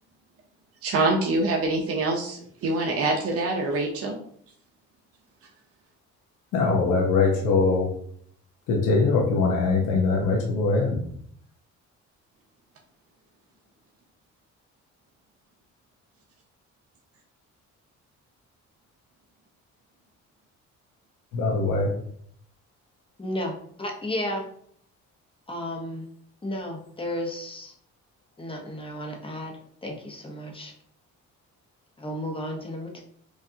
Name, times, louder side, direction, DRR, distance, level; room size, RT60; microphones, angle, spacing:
voice 1, 0.8-4.1, right 2 dB, 50° right, 0 dB, 0.7 m, -25 dB
voice 2, 6.5-7.9 8.7-11.0 21.3-21.9, left 3 dB, 85° left, -2 dB, 0.9 m, -22 dB
voice 3, 23.2-23.5 23.8-24.5 25.5-26.1 26.4-27.7 28.4-30.7 32.0-33.0, left 1 dB, 15° left, 1 dB, 0.9 m, -33 dB
4.7 x 2.5 x 2.7 m, 0.63 s
cardioid pair, 90°, 30 cm